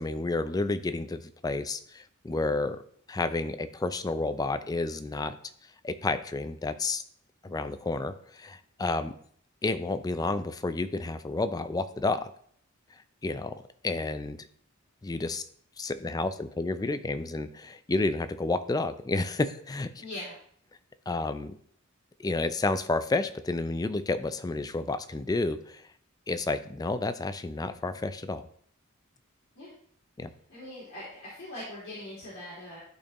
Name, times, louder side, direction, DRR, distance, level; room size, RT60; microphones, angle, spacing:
voice 1, 0.0-2.8 3.1-5.4 5.8-7.0 7.4-9.1 9.6-12.3 13.2-13.6 13.8-14.5 15.0-15.4 15.8-20.0 21.1-21.6 22.2-25.9 26.3-28.5 30.2-30.3, left 2 dB, 20° left, 11 dB, 0.4 m, -30 dB
voice 2, 20.0-20.3 29.5-29.7 30.5-32.8, left 1 dB, 55° left, -8 dB, 2.7 m, -41 dB
11.5 x 4.3 x 3.0 m, 0.62 s
head